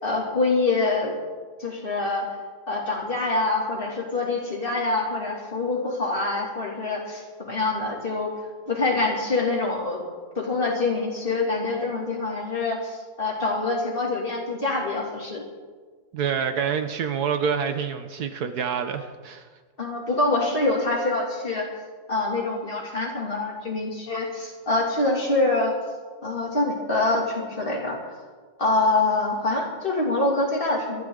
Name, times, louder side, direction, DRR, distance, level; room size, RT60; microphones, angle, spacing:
voice 1, 0.0-1.1 1.6-2.4 2.7-8.3 8.7-10.0 10.4-15.4 19.8-21.7 22.1-25.7 26.2-28.2 28.6-31.0, left 2 dB, 35° left, -1 dB, 2.8 m, -25 dB
voice 2, 16.1-19.5, right 7 dB, 75° right, 8 dB, 1.5 m, -27 dB
27.5 x 11.5 x 3.8 m, 1.5 s
omnidirectional pair, 1.7 m